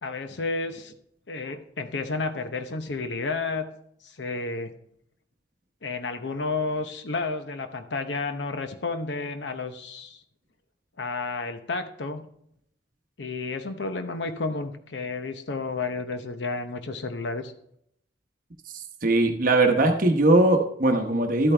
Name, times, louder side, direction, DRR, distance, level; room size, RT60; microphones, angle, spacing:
voice 1, 0.0-1.0 1.3-3.7 4.0-4.7 5.8-10.2 11.0-12.3 13.2-17.5, left 3 dB, 80° left, 8 dB, 0.8 m, -31 dB
voice 2, 18.7-21.5, right 2 dB, 50° right, 3 dB, 1.0 m, -20 dB
12.5 x 8.6 x 3.3 m, 0.71 s
head